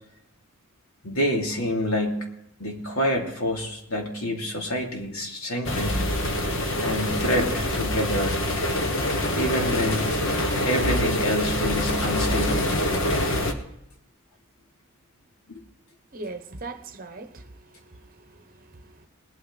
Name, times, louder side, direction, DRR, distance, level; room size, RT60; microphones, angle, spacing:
voice 1, 1.0-2.3 2.6-6.0 6.8-8.4 9.3-10.2 10.6-12.7 15.5-15.6, equal, 80° left, 3.0 m, -27 dB
sound 1, 5.6-13.5, left 1 dB, 60° left, 1.5 m, -25 dB
voice 2, 16.1-19.1, right 3 dB, 40° right, 1.0 m, -41 dB
20.0 x 9.3 x 4.1 m
head